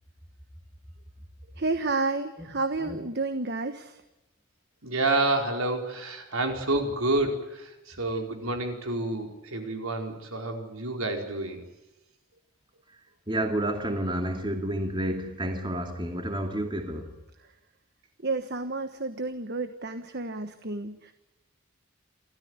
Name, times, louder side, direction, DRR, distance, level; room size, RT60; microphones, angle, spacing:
voice 1, 1.6-4.0 18.2-21.1, right 3 dB, 50° right, 1.3 m, -31 dB
voice 2, 4.8-11.6, right 2 dB, 80° right, 4.7 m, -29 dB
voice 3, 13.3-17.1, right 1 dB, 20° right, 2.5 m, -30 dB
29.0 x 14.0 x 9.8 m
head